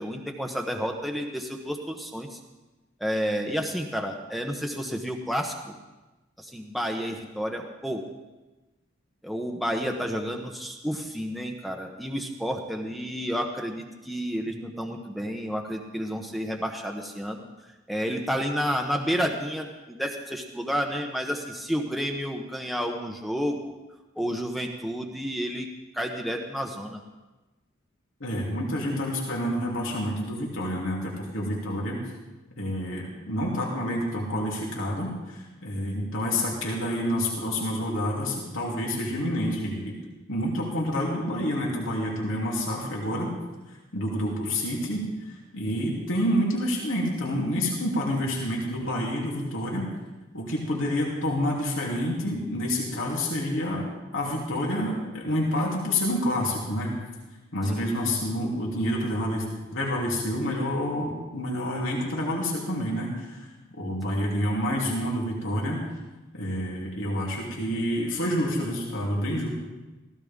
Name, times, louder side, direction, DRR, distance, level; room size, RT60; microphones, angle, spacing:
voice 1, 0.0-2.4 3.0-5.8 6.4-8.1 9.2-17.4 17.9-23.7 24.2-25.7 25.9-27.0 57.7-57.9 64.1-64.2, equal, ahead, 2 dB, 0.9 m, -30 dB
voice 2, 28.2-32.0 32.6-40.0 40.3-43.3 43.9-49.9 50.3-53.9 54.1-56.9 57.5-63.5 63.8-65.8 66.3-69.5, equal, 80° left, -3 dB, 3.0 m, -28 dB
16.0 x 16.0 x 3.7 m, 1.1 s
head